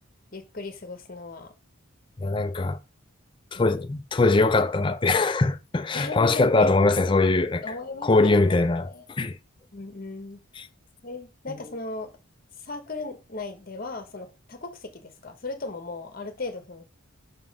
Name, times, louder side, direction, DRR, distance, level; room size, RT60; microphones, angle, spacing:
voice 1, 0.3-1.5 3.5-3.9 5.9-6.7 7.6-9.1 9.7-10.4 11.0-12.2 12.6-16.8, left 3 dB, 40° left, 1.0 m, -37 dB
voice 2, 2.2-2.8 3.5-7.6 8.0-9.4 10.6-10.7, left 3 dB, 20° left, 0.4 m, -22 dB
5.9 x 3.8 x 5.2 m
head